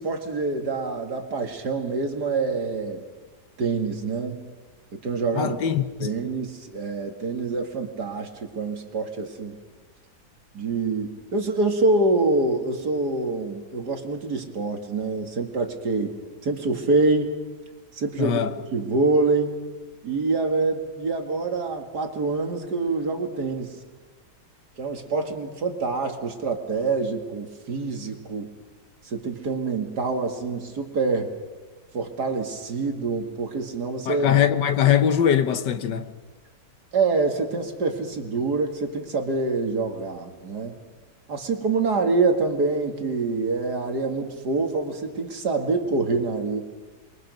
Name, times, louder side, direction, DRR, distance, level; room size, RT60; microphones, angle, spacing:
voice 1, 0.0-3.0 3.6-4.4 4.9-5.6 6.0-9.6 10.5-16.1 16.4-17.3 17.9-18.4 18.7-19.6 20.0-23.8 24.8-28.5 29.0-31.3 31.9-34.3 36.9-40.7 41.3-46.6, right 3 dB, 70° right, 2.7 m, -26 dB
voice 2, 5.3-6.1 18.2-18.5 34.1-36.1, left 9 dB, 85° left, 1.7 m, -21 dB
28.5 x 23.0 x 5.4 m
omnidirectional pair, 1.9 m